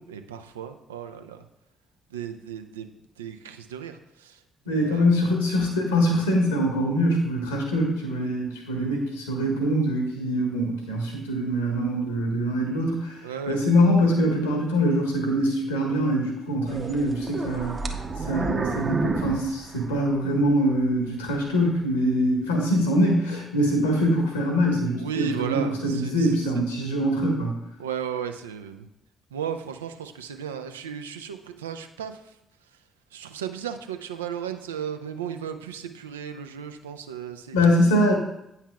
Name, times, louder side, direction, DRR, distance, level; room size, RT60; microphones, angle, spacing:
voice 1, 0.0-1.4 2.1-2.9 3.2-4.4 4.7-5.1 13.2-13.6 25.0-26.3 27.8-28.9 29.3-32.2 33.1-37.6, right 8 dB, 80° right, 8 dB, 0.4 m, -35 dB
voice 2, 4.7-17.8 18.3-27.6 37.5-38.1, equal, 80° left, 1 dB, 1.2 m, -23 dB
sound 1, 16.7-20.4 20.9-21.0 21.6-21.7, right 3 dB, 35° right, 0.8 m, -30 dB
9.1 x 5.6 x 2.3 m, 0.82 s
figure-of-eight pair, 40°, 0 cm